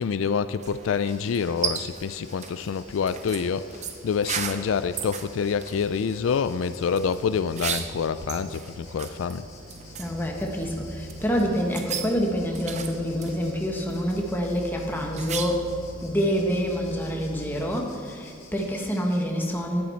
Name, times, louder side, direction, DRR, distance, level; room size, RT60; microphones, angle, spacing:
voice 1, 0.0-9.5, left 6 dB, 75° left, 13 dB, 0.4 m, -27 dB
sound 1, 0.6-15.8, right 7 dB, 35° right, 0.6 m, -37 dB
Insect, 1.1-19.2, left 4 dB, 55° left, 2.9 m, -52 dB
sound 2, 2.9-17.7, right 1 dB, 80° right, 2.3 m, -44 dB
voice 2, 10.0-15.7 16.0-19.8, equal, 10° left, 0 dB, 1.3 m, -27 dB
11.0 x 11.0 x 4.5 m, 2.5 s
head